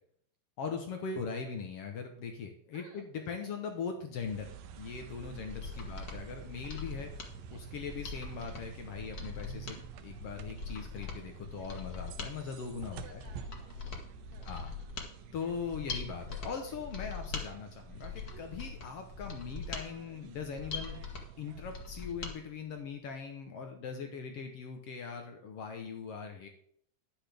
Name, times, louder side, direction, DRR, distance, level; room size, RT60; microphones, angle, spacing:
voice 1, 0.6-4.5 4.8-7.1 7.5-13.2 14.4-14.7 15.3-26.5, left 5 dB, 85° left, 5 dB, 1.3 m, -40 dB
voice 2, 2.7-3.7 5.7-5.9 7.3-7.9 12.9-14.5, right 5 dB, 65° right, 2 dB, 1.9 m, -59 dB
sound 1, 4.1-22.6, right 7 dB, 85° right, 2.4 m, -50 dB
Mechanisms, 5.3-22.3 22.7-22.8, left 4 dB, 60° left, 0.9 m, -43 dB
12.0 x 10.0 x 3.5 m, 0.66 s
omnidirectional pair, 4.1 m